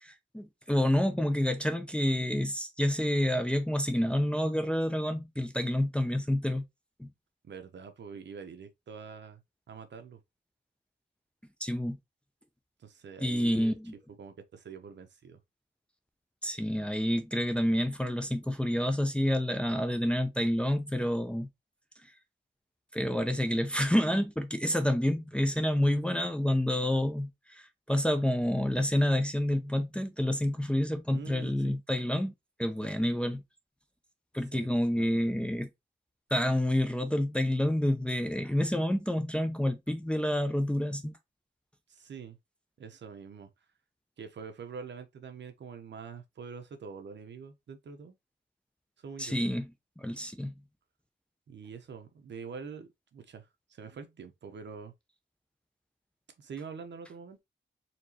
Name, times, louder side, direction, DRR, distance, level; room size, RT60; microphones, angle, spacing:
voice 1, 0.0-6.6 7.0-7.1 11.6-12.0 13.2-13.9 16.4-21.5 22.9-32.3 32.6-33.4 34.3-35.7 36.3-41.2 49.2-49.7 50.0-50.5, left 1 dB, 5° left, 0.6 m, -28 dB
voice 2, 7.4-9.4 9.7-10.2 12.8-13.8 14.2-15.4 31.1-31.8 34.5-34.7 34.9-35.3 41.9-42.4 42.8-43.5 44.2-48.1 49.0-49.4 51.5-54.9 56.4-57.4, right 5 dB, 65° right, 0.9 m, -45 dB
4.4 x 3.0 x 2.9 m
wide cardioid pair, 125°, 20 cm